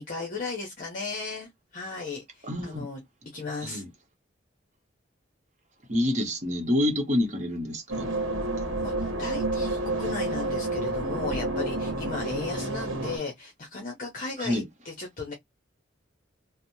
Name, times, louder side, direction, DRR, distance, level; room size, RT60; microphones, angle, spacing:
voice 1, 0.0-3.0 3.3-3.8 8.8-15.3, left 3 dB, 45° left, 0.7 m, -36 dB
voice 2, 2.4-2.8 3.6-3.9 5.9-8.1 14.4-14.6, left 1 dB, 35° right, 0.9 m, -27 dB
sound 1, 7.9-13.2, right 2 dB, 90° right, 1.0 m, -29 dB
2.9 x 2.1 x 2.7 m
head